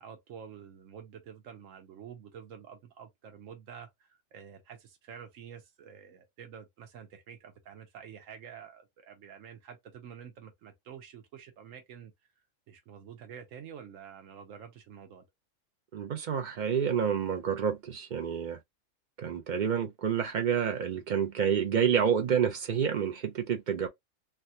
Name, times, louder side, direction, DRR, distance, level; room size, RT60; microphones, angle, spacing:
voice 1, 0.0-12.1 12.7-15.2, right 8 dB, 85° right, 1.1 m, -48 dB
voice 2, 15.9-18.6 19.2-23.9, right 7 dB, 65° right, 0.4 m, -28 dB
3.4 x 2.3 x 2.7 m
omnidirectional pair, 1.3 m